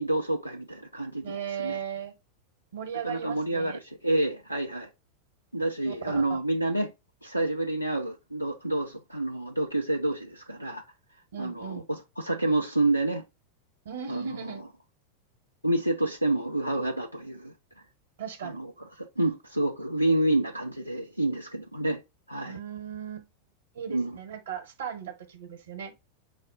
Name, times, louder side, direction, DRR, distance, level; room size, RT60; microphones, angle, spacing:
voice 1, 0.0-1.8 3.0-4.9 5.5-6.9 7.2-10.8 11.4-13.2 14.1-14.6 15.6-17.5 18.4-22.0 22.3-22.6 23.9-24.2, right 2 dB, 90° right, 0.4 m, -28 dB
voice 2, 1.2-2.1 2.7-3.8 5.8-6.4 11.3-11.9 13.8-14.6 18.2-18.6 22.4-23.3 23.7-26.0, right 8 dB, 60° right, 1.0 m, -37 dB
4.9 x 2.1 x 3.9 m
figure-of-eight pair, 90°, 0 cm